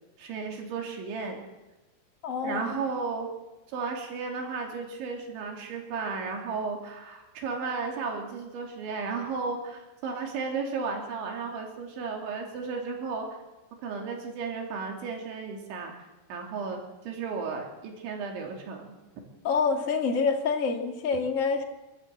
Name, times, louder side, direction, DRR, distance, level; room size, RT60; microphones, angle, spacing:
voice 1, 0.2-1.4 2.4-3.3 3.7-13.3 13.8-16.8 17.1-18.9, right 4 dB, 80° right, 1 dB, 5.4 m, -34 dB
voice 2, 2.2-2.8 19.4-21.6, left 5 dB, 50° left, 2 dB, 0.9 m, -27 dB
27.0 x 13.5 x 7.8 m, 1.1 s
omnidirectional pair, 5.2 m